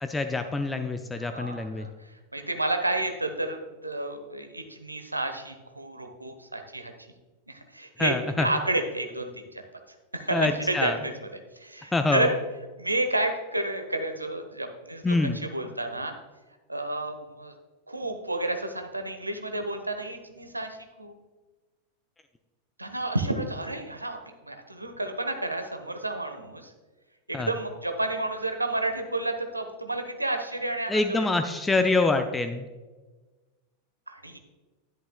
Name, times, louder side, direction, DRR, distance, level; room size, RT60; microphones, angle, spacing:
voice 1, 0.0-1.9 8.0-8.5 10.3-11.0 11.9-12.3 15.0-15.4 27.3-27.5 30.9-32.7, left 3 dB, 10° left, 7 dB, 0.5 m, -25 dB
voice 2, 1.1-7.1 7.5-9.6 10.1-12.3 12.8-16.1 16.7-17.5 17.9-21.1 22.8-24.2 24.4-26.7 27.3-31.3 34.1-34.4, right 2 dB, 85° right, 6 dB, 1.0 m, -31 dB
11.0 x 10.0 x 2.3 m, 1.2 s
figure-of-eight pair, 90°, 0 cm